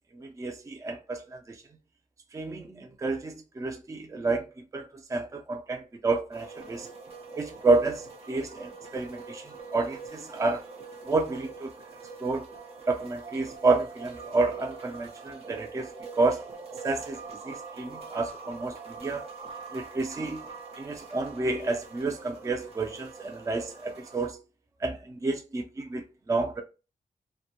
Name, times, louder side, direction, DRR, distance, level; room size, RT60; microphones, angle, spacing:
voice 1, 0.1-1.6 2.3-4.5 4.7-6.9 7.4-10.6 11.1-11.7 12.2-12.5 12.9-16.5 16.8-17.2 17.4-19.2 19.7-20.4 20.8-24.4 24.8-26.6, right 3 dB, 20° right, 0.4 m, -30 dB
sound 1, 6.3-24.3, right 4 dB, 45° right, 0.7 m, -44 dB
2.1 x 2.0 x 2.8 m
wide cardioid pair, 105°, 14 cm